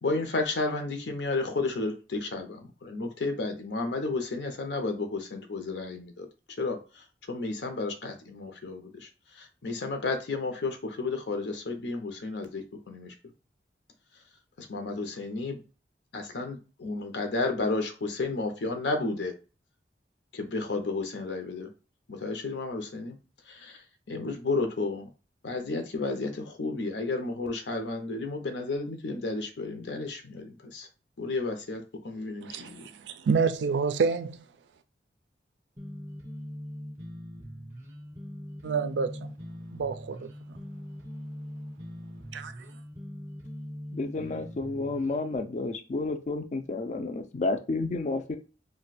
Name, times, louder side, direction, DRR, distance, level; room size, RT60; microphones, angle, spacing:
voice 1, 0.0-6.3 6.6-13.1 14.1-14.2 14.6-15.6 16.1-19.3 20.3-21.7 22.1-23.2 23.4-25.1 25.4-30.9 31.2-32.9, left 3 dB, 80° left, 0.6 m, -32 dB
voice 2, 32.4-34.4 38.6-39.3 39.7-40.3 42.3-42.5, right 5 dB, 85° right, 0.4 m, -28 dB
sound 1, 35.8-45.4, equal, 15° right, 0.7 m, -41 dB
voice 3, 43.9-48.4, left 3 dB, 40° left, 0.4 m, -31 dB
2.6 x 2.1 x 4.0 m
head